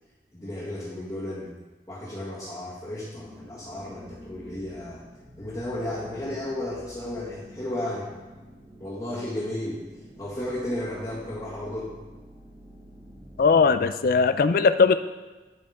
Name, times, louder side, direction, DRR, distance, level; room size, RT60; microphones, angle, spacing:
voice 1, 0.3-1.5 1.9-5.0 5.4-8.1 8.8-9.8 10.2-11.9, left 1 dB, 20° left, -10 dB, 1.8 m, -33 dB
sound 1, 3.0-13.6, equal, 10° right, 1.4 m, -48 dB
voice 2, 13.4-14.9, left 4 dB, 55° left, 12 dB, 0.4 m, -19 dB
12.0 x 5.3 x 3.6 m, 1.3 s
head